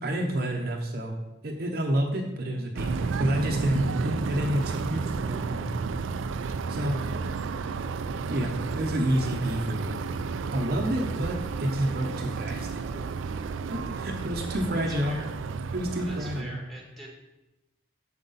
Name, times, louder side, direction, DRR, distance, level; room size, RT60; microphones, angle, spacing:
voice 1, 0.0-1.1 1.4-5.7 6.7-7.0 8.3-9.9 10.5-13.1 13.7-15.2 15.7-16.6, right 1 dB, 50° right, 2 dB, 0.7 m, -29 dB
sound 1, 2.8-16.4, right 4 dB, 80° right, 0.4 m, -32 dB
voice 2, 14.7-15.3 16.0-17.1, right 1 dB, ahead, -2 dB, 1.4 m, -45 dB
7.8 x 5.9 x 4.0 m, 1.0 s
head